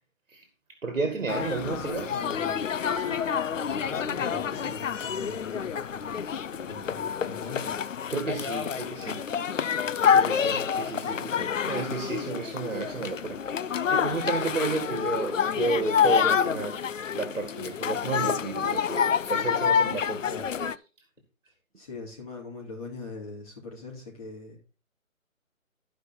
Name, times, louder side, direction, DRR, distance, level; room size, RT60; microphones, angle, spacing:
voice 1, 0.8-2.1 8.1-9.5 10.1-13.4 13.9-16.8 17.1-20.3 20.6-20.7, right 4 dB, 65° right, 2.0 m, -32 dB
sound 1, 1.3-20.7, left 7 dB, 65° left, 0.6 m, -28 dB
voice 2, 1.7-2.6 2.9-3.2 3.8-6.2 6.5-7.8 20.2-20.5 21.8-24.6, left 3 dB, 25° left, 3.2 m, -41 dB
sound 2, 3.0-5.1, left 5 dB, 45° right, 2.7 m, -46 dB
13.5 x 5.1 x 4.4 m
figure-of-eight pair, 165°, 41 cm